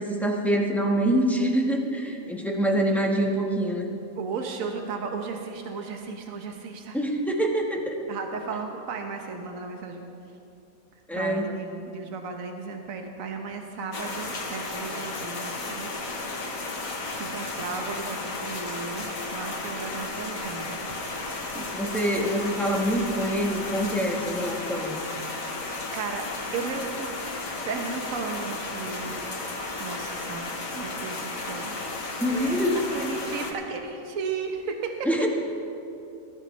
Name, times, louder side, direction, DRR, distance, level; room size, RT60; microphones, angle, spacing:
voice 1, 0.0-3.9 6.9-8.1 11.1-11.5 21.5-25.0 32.2-32.8 35.0-35.3, right 1 dB, ahead, -1 dB, 1.3 m, -25 dB
voice 2, 4.2-7.0 8.1-10.0 11.1-15.9 17.1-21.7 25.9-26.3 26.5-27.3 27.6-29.2 29.8-31.8 32.3-35.1, right 5 dB, 70° right, 3 dB, 1.4 m, -35 dB
sound 1, 13.9-33.5, left 3 dB, 70° left, 1.7 m, -34 dB
20.5 x 13.5 x 3.3 m, 2.7 s
omnidirectional pair, 1.5 m